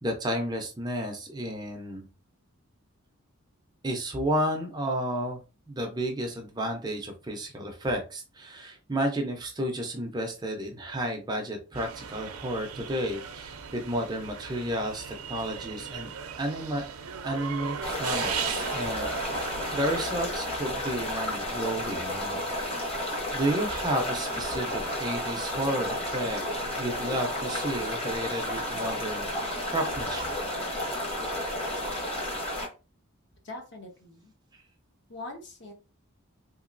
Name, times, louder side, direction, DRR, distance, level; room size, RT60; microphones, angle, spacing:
voice 1, 0.0-2.1 3.8-5.4 5.7-16.1 16.4-16.8 17.2-22.4 23.3-26.4 26.8-29.3 29.6-30.3, right 1 dB, 20° right, 3 dB, 0.5 m, -32 dB
sound 1, 11.8-20.1, right 7 dB, 75° right, 0.5 m, -37 dB
sound 2, 17.8-32.7, left 1 dB, 25° left, 1.0 m, -32 dB
voice 2, 33.4-34.3 35.1-35.7, left 2 dB, 50° left, 2 dB, 0.9 m, -42 dB
3.6 x 2.9 x 2.5 m, 0.32 s
head